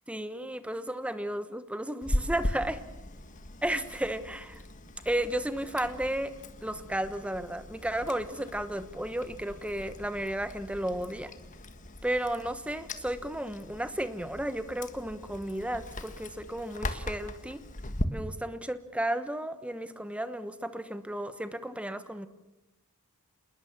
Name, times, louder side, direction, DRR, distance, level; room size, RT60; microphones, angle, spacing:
voice 1, 0.1-2.8 3.6-4.6 5.0-6.3 6.6-11.3 12.0-17.6 18.1-22.3, right 1 dB, 5° right, 11 dB, 1.1 m, -33 dB
Chewing mastication, 2.0-18.0, left 1 dB, 35° left, 1.5 m, -39 dB
27.5 x 20.5 x 7.3 m, 0.97 s
head